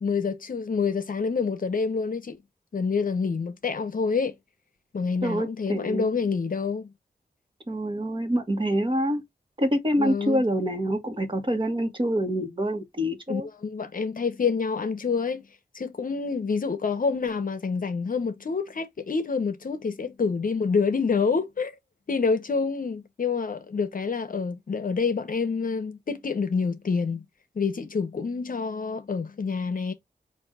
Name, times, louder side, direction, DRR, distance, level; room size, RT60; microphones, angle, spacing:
voice 1, 0.0-2.4 2.7-4.3 4.9-6.9 10.0-10.4 13.3-15.4 15.7-21.8 22.1-27.2 27.5-29.9, left 5 dB, 55° left, 0.8 m, -27 dB
voice 2, 5.2-6.1 7.7-9.2 9.6-13.5, equal, 30° right, 1.3 m, -26 dB
5.2 x 2.6 x 3.5 m
wide cardioid pair, 105°, 17 cm